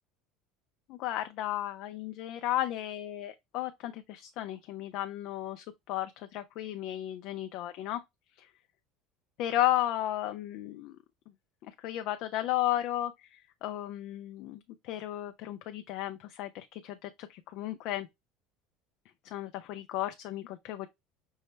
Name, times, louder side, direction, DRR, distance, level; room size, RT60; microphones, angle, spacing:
voice 1, 0.9-8.0 8.4-8.5 9.4-11.0 11.6-18.1 19.2-20.9, left 14 dB, 45° left, 0.3 m, -34 dB
5.4 x 2.0 x 3.1 m
cardioid pair, 175°, 0 cm